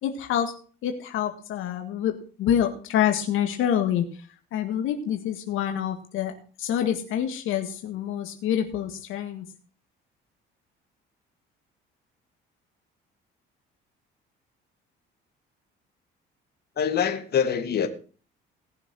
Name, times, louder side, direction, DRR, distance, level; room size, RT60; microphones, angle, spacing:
voice 1, 0.0-0.5 0.8-2.1 2.4-4.3 4.5-9.5, left 10 dB, 75° left, 1.9 m, -27 dB
voice 2, 16.8-17.9, left 7 dB, 50° left, 2.4 m, -24 dB
18.5 x 6.9 x 6.3 m
cardioid pair, 110°, 21 cm